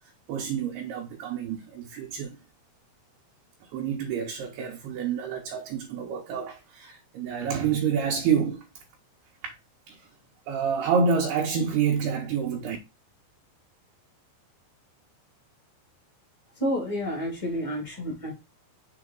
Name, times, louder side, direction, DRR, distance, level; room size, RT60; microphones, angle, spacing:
voice 1, 0.3-2.4 3.7-8.6 9.4-9.5 9.9-10.0 10.5-12.8, right 6 dB, 75° right, 2.6 m, -28 dB
voice 2, 16.5-18.3, equal, 30° left, 0.6 m, -30 dB
7.2 x 3.8 x 3.7 m
omnidirectional pair, 5.1 m